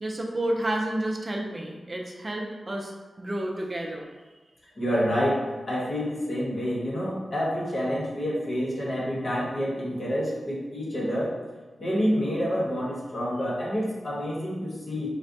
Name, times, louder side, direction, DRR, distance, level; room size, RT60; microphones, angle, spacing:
voice 1, 0.0-4.1, right 1 dB, 35° right, 0 dB, 0.4 m, -30 dB
voice 2, 4.8-5.4 5.7-11.3 11.8-15.1, equal, 55° left, -5 dB, 1.0 m, -28 dB
4.8 x 2.2 x 2.6 m, 1.3 s
wide cardioid pair, 105°, 0 cm